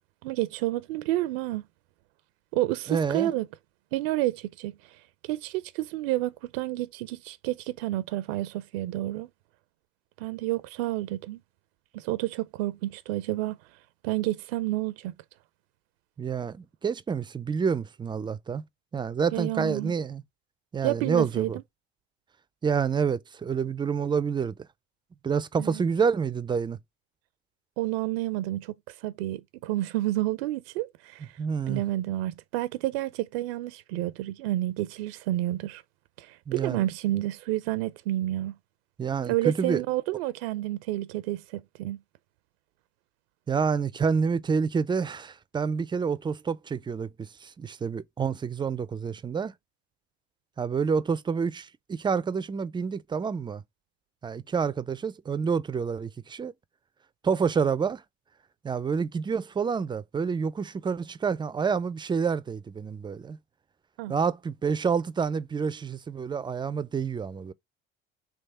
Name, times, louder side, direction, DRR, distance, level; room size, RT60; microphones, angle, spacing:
voice 1, 0.2-1.6 2.5-3.5 3.9-4.7 5.2-9.3 10.2-11.4 11.9-13.6 14.0-15.1 19.3-19.9 20.8-21.5 25.6-25.8 27.8-31.3 31.7-35.8 36.2-38.5 39.3-42.0 64.0-64.1, right 16 dB, 80° right, 0.5 m, -30 dB
voice 2, 2.9-3.3 16.2-18.6 18.9-20.2 20.7-21.6 22.6-24.5 25.2-26.8 31.4-31.8 36.5-36.8 39.0-39.8 43.5-49.5 50.6-53.6 54.2-56.5 57.2-58.0 58.6-63.4 64.1-67.5, right 6 dB, 15° right, 0.3 m, -28 dB
3.5 x 3.2 x 4.2 m
supercardioid pair, 85°, 30 cm